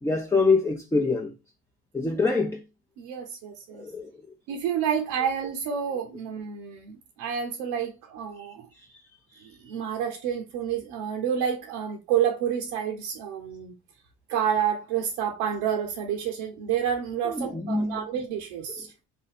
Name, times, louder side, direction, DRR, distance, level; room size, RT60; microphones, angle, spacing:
voice 1, 0.0-1.3 1.9-2.6 3.8-4.1 17.2-18.1, left 3 dB, 10° left, 0.6 m, -25 dB
voice 2, 2.0-2.3 3.0-3.9 4.5-8.7 9.4-13.7 14.3-18.9, right 8 dB, 80° right, 0.7 m, -29 dB
3.3 x 2.6 x 4.0 m
supercardioid pair, 80°, 29 cm